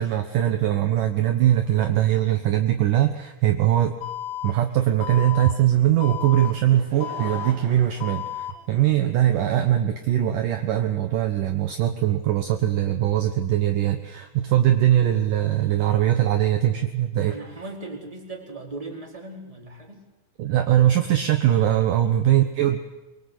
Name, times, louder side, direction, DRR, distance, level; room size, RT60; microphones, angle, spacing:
voice 1, 0.0-4.0 4.4-17.4 20.4-22.8, right 12 dB, 70° right, 6 dB, 2.0 m, -21 dB
Alarm, 4.0-4.5 5.0-5.5 6.0-6.5 7.0-7.5 8.0-8.5, left 11 dB, 60° left, 5.2 m, -32 dB
Laughter / Crowd, 6.5-9.2 9.9-10.0, right 2 dB, 40° right, 4.2 m, -43 dB
voice 2, 17.3-20.0 21.9-22.1, right 2 dB, 10° right, 0 dB, 4.1 m, -38 dB
24.5 x 24.0 x 8.4 m, 1.0 s
omnidirectional pair, 5.4 m